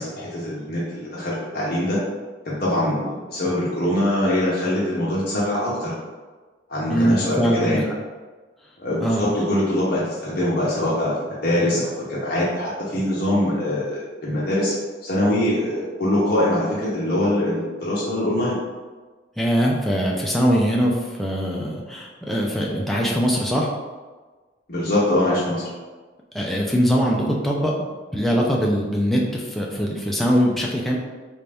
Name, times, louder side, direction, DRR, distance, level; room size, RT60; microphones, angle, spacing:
voice 1, 0.0-2.0 2.4-5.9 6.7-7.8 8.8-14.7 15.0-18.6 24.7-25.7, left 1 dB, 50° left, -7 dB, 0.8 m, -23 dB
voice 2, 6.9-7.8 9.0-9.2 19.4-23.7 26.3-31.0, equal, ahead, -3 dB, 0.4 m, -22 dB
3.4 x 2.7 x 3.3 m, 1.3 s
head